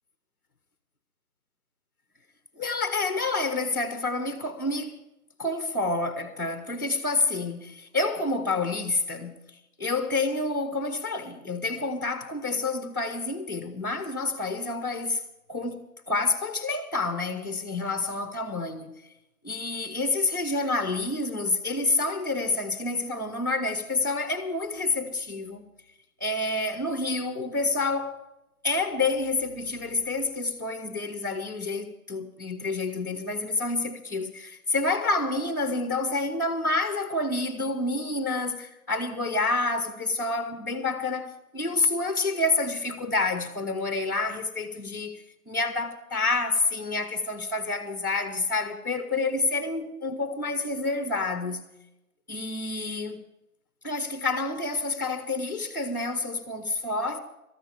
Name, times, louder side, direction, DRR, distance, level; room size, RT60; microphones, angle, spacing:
voice 1, 2.6-5.0 5.4-9.4 9.8-15.2 15.5-18.9 19.4-25.6 26.2-28.2 28.6-51.7 52.3-53.2 53.8-57.2, left 3 dB, 15° left, 0.8 m, -28 dB
19.0 x 14.0 x 3.5 m
figure-of-eight pair, 160°, 44 cm